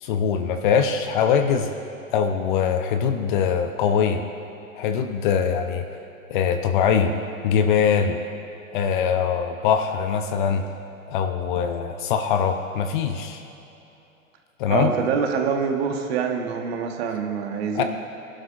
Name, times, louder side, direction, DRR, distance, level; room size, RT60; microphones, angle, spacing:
voice 1, 0.0-1.7 2.1-4.2 4.7-5.9 6.3-7.1 7.4-8.2 8.7-10.6 11.1-13.4 14.6-14.9 17.7-17.8, left 7 dB, 35° left, 7 dB, 0.7 m, -22 dB
voice 2, 14.7-17.8, right 6 dB, 45° right, 4 dB, 1.4 m, -25 dB
21.5 x 11.5 x 2.4 m, 2.9 s
figure-of-eight pair, 110°, 43 cm